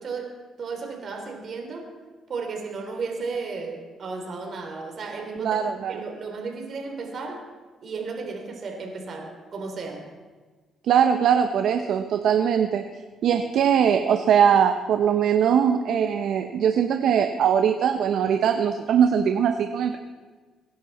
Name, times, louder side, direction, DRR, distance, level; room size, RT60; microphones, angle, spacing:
voice 1, 0.0-1.9 2.3-5.6 5.9-7.5 7.8-10.1, right 4 dB, 55° right, 2 dB, 3.5 m, -34 dB
voice 2, 5.4-6.0 10.9-12.8 13.2-20.0, right 8 dB, 75° right, 6 dB, 0.8 m, -21 dB
23.5 x 11.0 x 4.3 m, 1.4 s
cardioid pair, 90°, 0 cm